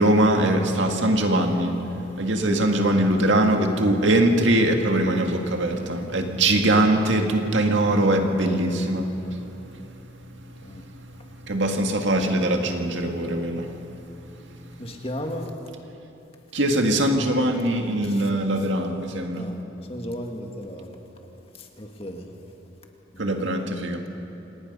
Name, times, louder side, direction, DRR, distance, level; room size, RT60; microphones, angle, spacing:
voice 1, 0.0-1.8 2.2-9.4 9.7-9.8 11.5-13.7 14.6-14.7 16.5-19.5 23.2-24.0, right 1 dB, 75° right, 3 dB, 2.0 m, -22 dB
voice 2, 14.8-15.5 18.0-18.2 19.3-19.6 19.9-21.0 21.5-22.3 23.1-23.8, equal, 30° left, 3 dB, 1.8 m, -36 dB
27.0 x 19.0 x 5.5 m, 2.9 s
head